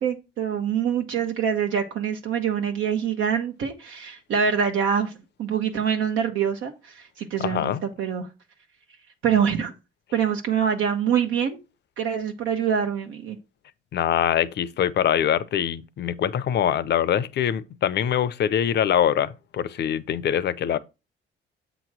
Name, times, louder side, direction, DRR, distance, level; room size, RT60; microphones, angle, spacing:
voice 1, 0.0-8.3 9.2-9.7 10.1-11.6 12.0-13.4, right 7 dB, 80° right, 1.0 m, -25 dB
voice 2, 7.4-7.8 13.9-20.8, left 9 dB, 60° left, 0.6 m, -23 dB
7.5 x 3.0 x 6.0 m
cardioid pair, 90°, 20 cm